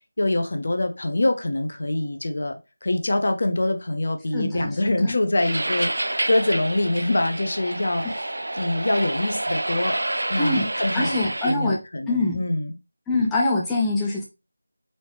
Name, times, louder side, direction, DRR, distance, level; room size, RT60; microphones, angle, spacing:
voice 1, 0.2-8.0 8.5-10.0 10.3-12.7, left 1 dB, 55° left, 6 dB, 0.8 m, -25 dB
voice 2, 4.3-5.2 10.4-10.7 10.9-11.8 12.1-12.4 13.1-14.2, left 2 dB, 5° left, -4 dB, 0.5 m, -24 dB
sound 1, 5.4-11.5, right 1 dB, 70° right, 0.4 m, -28 dB
4.2 x 3.4 x 3.0 m, 0.26 s
figure-of-eight pair, 165°, 0 cm